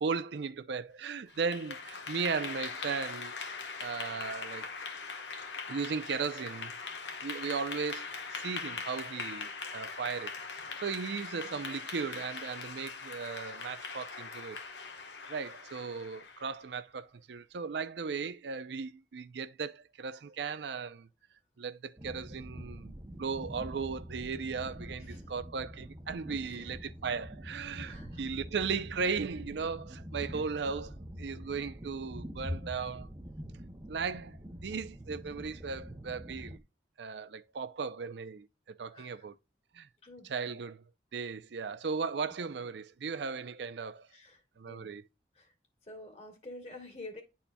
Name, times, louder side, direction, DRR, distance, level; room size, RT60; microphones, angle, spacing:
voice 1, 0.0-3.3 3.8-4.7 5.7-6.7 7.2-10.4 10.8-14.6 15.3-21.1 21.6-33.1 33.9-36.6 37.0-39.3 39.7-39.9 40.3-40.8 41.1-44.1 44.6-45.0, right 5 dB, 70° right, 0.5 m, -37 dB
Clapping / Applause, 1.3-16.6, left 4 dB, 80° left, 1.2 m, -41 dB
sound 1, 22.0-36.6, equal, 20° right, 0.6 m, -45 dB
voice 2, 26.4-26.7 27.9-28.3 38.9-39.3 40.0-40.6 44.1-44.9 45.3-45.5 45.8-47.2, left 2 dB, 35° left, 2.2 m, -49 dB
11.0 x 4.3 x 2.3 m
head